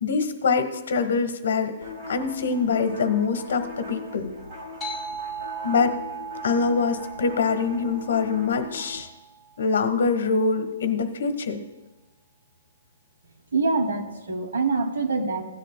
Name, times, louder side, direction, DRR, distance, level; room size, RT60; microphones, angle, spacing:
voice 1, 0.0-1.7 2.1-4.3 5.6-6.0 6.4-9.1 9.6-11.6, left 5 dB, 65° left, 9 dB, 1.2 m, -24 dB
sound 1, 1.8-9.0, left 2 dB, 25° right, 1.7 m, -40 dB
sound 2, 4.8-9.8, right 5 dB, 5° left, 1.2 m, -38 dB
voice 2, 13.5-15.4, right 3 dB, 90° right, 4 dB, 2.2 m, -25 dB
16.5 x 10.0 x 2.2 m, 1.1 s
hypercardioid pair, 175°, 0 cm